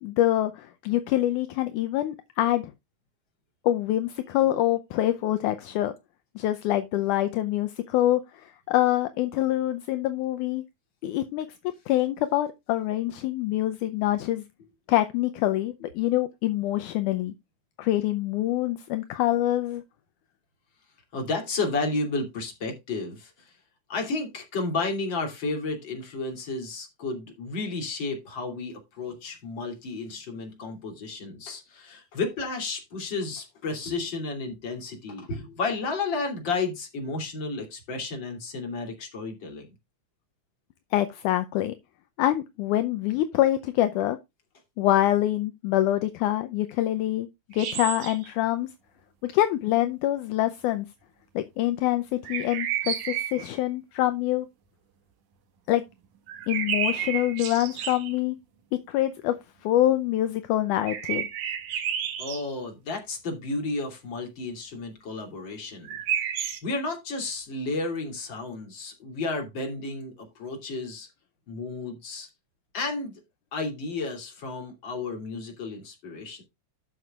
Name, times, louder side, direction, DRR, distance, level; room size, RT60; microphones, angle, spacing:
voice 1, 0.0-2.7 3.6-5.9 6.4-10.6 11.0-11.5 11.9-14.4 14.9-17.3 17.8-19.8 40.9-41.8 42.2-44.2 44.8-48.7 49.2-50.9 51.4-54.5 55.7-55.8 56.5-58.4 58.7-59.4 59.6-61.3, left 14 dB, 80° left, 2.1 m, -25 dB
voice 2, 21.1-23.5 23.9-39.7 62.2-66.0 66.6-71.1 71.5-72.3 72.7-73.2 73.5-76.4, left 3 dB, 35° left, 3.3 m, -32 dB
sound 1, 47.5-48.3 52.2-53.5 56.3-58.1 60.9-62.5 65.8-66.6, right 9 dB, 70° right, 2.9 m, -31 dB
12.5 x 7.6 x 2.4 m
omnidirectional pair, 3.7 m